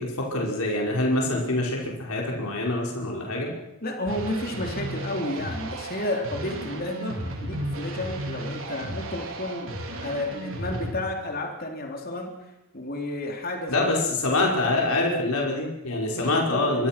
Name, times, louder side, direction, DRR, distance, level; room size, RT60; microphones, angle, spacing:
voice 1, 0.0-3.5 13.7-16.9, left 2 dB, 85° left, -1 dB, 5.2 m, -25 dB
voice 2, 3.8-9.7 10.0-12.3 12.7-14.1 15.2-15.3 16.1-16.9, left 1 dB, 40° left, 2 dB, 3.7 m, -32 dB
sound 1, 4.1-10.9, right 1 dB, 65° right, 4.3 m, -34 dB
25.5 x 24.0 x 6.1 m, 0.89 s
head